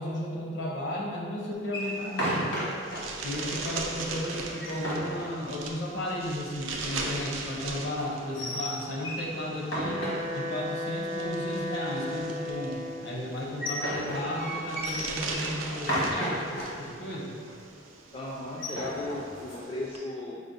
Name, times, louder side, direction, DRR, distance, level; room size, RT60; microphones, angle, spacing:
voice 1, 0.0-2.6 3.2-17.4, left 1 dB, 65° left, -3 dB, 0.7 m, -34 dB
sound 1, 1.6-3.0 3.3-3.4 3.8-3.9 4.4-5.9 8.1-9.3 9.6-10.7 13.3-16.7 17.1-17.2 17.5-17.8 18.4-19.6, equal, 85° left, 1.3 m, -33 dB
sound 2, 1.8-20.0, right 3 dB, 90° right, 0.5 m, -40 dB
Wind instrument woodwind instrument, 9.8-13.2, left 1 dB, 35° right, 0.5 m, -34 dB
voice 2, 18.1-20.4, left 1 dB, 30° left, -4 dB, 0.3 m, -36 dB
4.9 x 2.0 x 3.9 m, 2.2 s
head